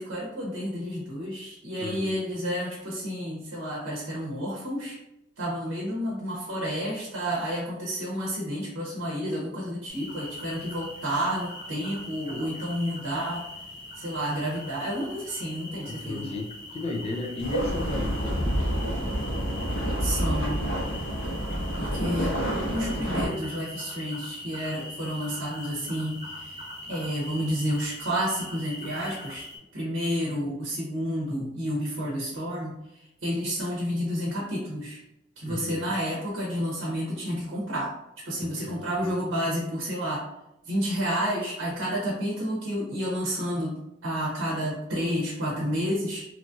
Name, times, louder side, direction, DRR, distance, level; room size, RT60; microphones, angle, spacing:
voice 1, 0.0-5.0 5.4-13.4 14.0-16.3 20.0-20.6 21.8-29.4 29.7-35.0 35.4-37.9 38.2-40.2 40.6-46.3, equal, 85° right, -5 dB, 0.8 m, -30 dB
voice 2, 1.8-2.2 15.9-18.8 35.5-35.9 38.3-39.1, left 2 dB, 30° left, 2 dB, 0.4 m, -35 dB
sound 1, 9.9-29.6, left 1 dB, 25° right, 1.0 m, -42 dB
sound 2, 17.4-23.3, equal, 65° left, 1.2 m, -28 dB
2.9 x 2.4 x 2.5 m, 0.88 s
head